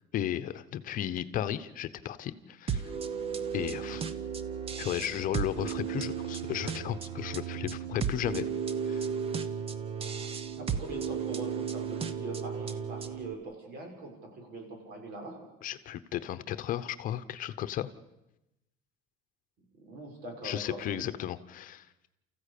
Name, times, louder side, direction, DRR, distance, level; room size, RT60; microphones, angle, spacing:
voice 1, 0.1-2.9 3.5-4.0 4.8-8.4 8.8-9.1 15.6-17.9 20.4-21.9, left 11 dB, 50° left, 12 dB, 1.0 m, -34 dB
sound 1, 2.7-13.3, right 7 dB, 30° right, 1.0 m, -34 dB
voice 2, 10.6-15.4 19.8-21.1, right 2 dB, 60° right, 3 dB, 6.7 m, -42 dB
29.5 x 15.0 x 8.5 m, 0.95 s
cardioid pair, 150°, 18 cm